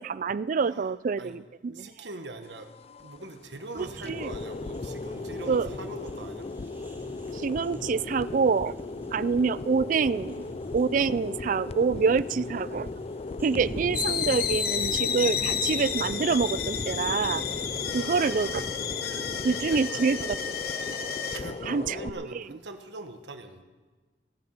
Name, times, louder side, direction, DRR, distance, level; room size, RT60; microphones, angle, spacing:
voice 1, 0.0-1.9 3.7-4.3 5.5-5.7 7.3-8.7 9.1-10.5 10.7-12.9 13.4-17.4 17.9-18.6 19.1-20.4 21.6-22.6, right 5 dB, 50° right, 18 dB, 0.4 m, -27 dB
voice 2, 1.7-2.7 3.0-6.5 12.4-12.6 17.9-18.6 19.7-20.3 21.3-23.6, right 2 dB, 80° right, 7 dB, 1.4 m, -42 dB
sound 1, 2.4-22.1, left 3 dB, 35° left, 0.4 m, -37 dB
sound 2, 3.8-19.8, equal, 15° right, 2.1 m, -43 dB
sound 3, 13.9-21.4, left 8 dB, 60° left, 1.0 m, -31 dB
16.0 x 9.7 x 7.9 m, 1.3 s
head